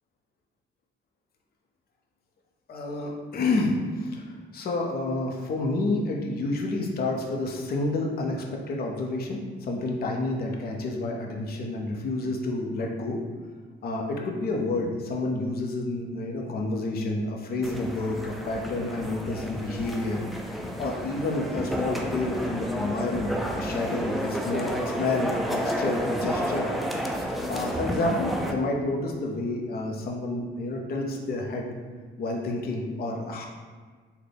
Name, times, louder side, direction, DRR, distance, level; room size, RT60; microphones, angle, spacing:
voice 1, 2.7-13.2 13.8-20.2 20.8-26.7 27.1-31.7 32.2-33.5, left 2 dB, 50° left, 0 dB, 0.6 m, -29 dB
sound 1, 17.6-28.5, equal, ahead, 0.3 m, -31 dB
3.8 x 2.2 x 3.4 m, 1.5 s
cardioid pair, 90°, 20 cm